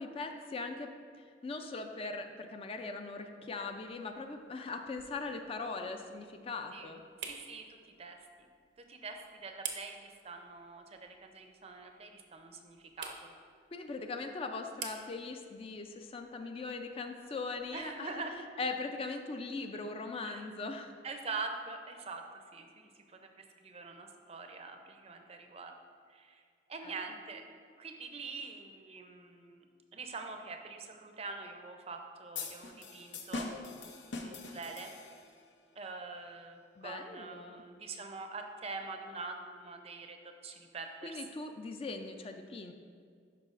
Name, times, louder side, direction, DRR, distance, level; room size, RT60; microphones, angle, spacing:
voice 1, 0.0-7.0 13.7-18.2 18.6-20.9 26.8-26.9 36.8-37.6 41.0-42.7, left 3 dB, 35° left, 6 dB, 0.3 m, -40 dB
sound 1, 3.6-18.4, right 6 dB, 80° right, 0.7 m, -51 dB
voice 2, 7.3-8.5 8.9-13.3 17.7-18.5 20.2-20.4 21.0-25.7 26.1-26.4 26.7-27.4 27.8-29.6 29.9-33.5 34.2-34.9 35.8-41.2, right 3 dB, 35° right, 5 dB, 0.5 m, -44 dB
sound 2, 32.3-35.4, left 3 dB, 85° left, 0.7 m, -42 dB
11.5 x 4.7 x 2.5 m, 2.1 s
head